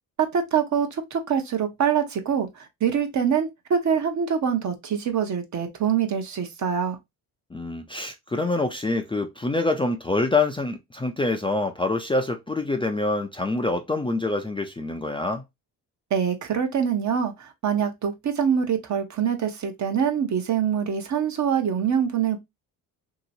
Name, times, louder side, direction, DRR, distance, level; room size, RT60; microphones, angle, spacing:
voice 1, 0.2-7.0 16.1-22.4, right 7 dB, 50° right, 0.9 m, -24 dB
voice 2, 7.5-15.4, left 2 dB, 15° left, 0.4 m, -26 dB
3.0 x 2.9 x 2.6 m
cardioid pair, 90°, 38 cm